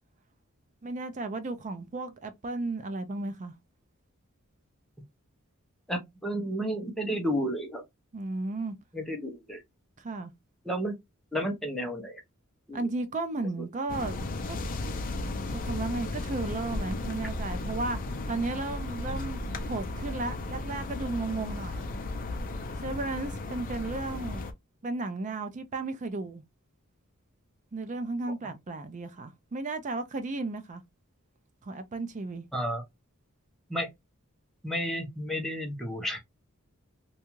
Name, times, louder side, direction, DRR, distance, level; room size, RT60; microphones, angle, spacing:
voice 1, 0.8-3.5 8.1-8.7 10.0-10.3 12.7-14.6 15.5-18.0 18.3-21.9 22.8-24.5 24.8-26.4 27.7-30.8 31.6-32.5, right 3 dB, 35° right, 0.4 m, -34 dB
voice 2, 5.9-7.8 8.9-9.6 10.6-10.9 11.3-12.2 12.7-12.9 32.5-32.8 33.7-33.9 34.6-36.2, equal, ahead, 0.7 m, -32 dB
sound 1, 13.9-24.5, left 2 dB, 40° left, 0.4 m, -35 dB
2.6 x 2.3 x 2.9 m
head